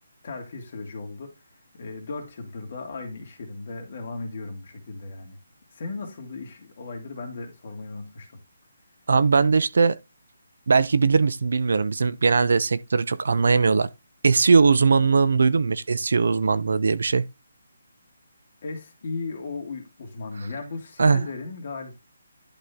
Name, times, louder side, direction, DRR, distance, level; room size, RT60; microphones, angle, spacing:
voice 1, 0.2-1.3 1.7-5.4 5.7-8.4 18.6-22.0, left 3 dB, 30° left, 2.4 m, -36 dB
voice 2, 9.1-10.0 10.7-13.9 14.2-17.2 21.0-21.2, right 4 dB, 55° right, 0.6 m, -20 dB
11.0 x 4.3 x 3.6 m
hypercardioid pair, 180°, 0 cm